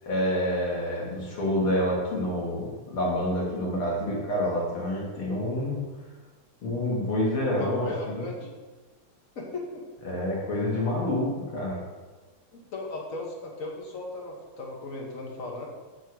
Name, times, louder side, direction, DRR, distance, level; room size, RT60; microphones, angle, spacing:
voice 1, 0.0-5.8 6.6-8.3 10.0-11.8, left 1 dB, 70° left, -4 dB, 2.7 m, -28 dB
voice 2, 7.5-8.5 9.3-9.8 12.5-15.7, left 2 dB, 45° left, -1 dB, 1.3 m, -36 dB
6.9 x 3.7 x 6.2 m, 1.3 s
omnidirectional pair, 2.4 m